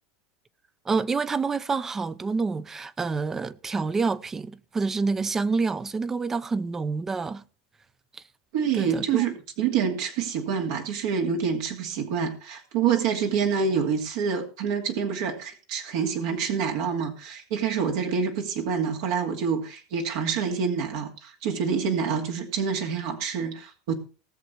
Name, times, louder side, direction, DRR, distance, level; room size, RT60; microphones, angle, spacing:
voice 1, 0.8-7.4 8.1-8.2 8.7-9.2, right 4 dB, 20° right, 0.7 m, -27 dB
voice 2, 8.5-23.9, right 6 dB, 70° right, 2.6 m, -27 dB
19.0 x 7.0 x 4.6 m
supercardioid pair, 110°, 2 cm